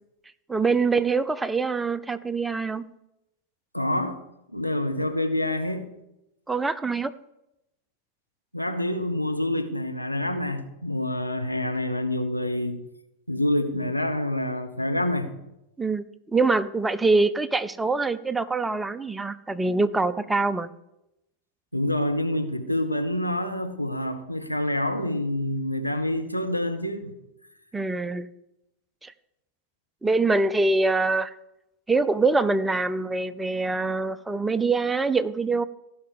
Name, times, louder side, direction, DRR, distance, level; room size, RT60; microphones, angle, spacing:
voice 1, 0.5-2.8 6.5-7.1 15.8-16.0 16.3-20.7 27.7-28.3 29.0-29.1 30.0-31.3 31.9-35.6, right 3 dB, 10° right, 0.6 m, -24 dB
voice 2, 3.7-4.2 4.5-5.9 8.5-12.8 13.3-15.3 21.7-27.1, left 1 dB, 90° left, 1.1 m, -27 dB
15.5 x 5.6 x 8.3 m
figure-of-eight pair, 90°, 0 cm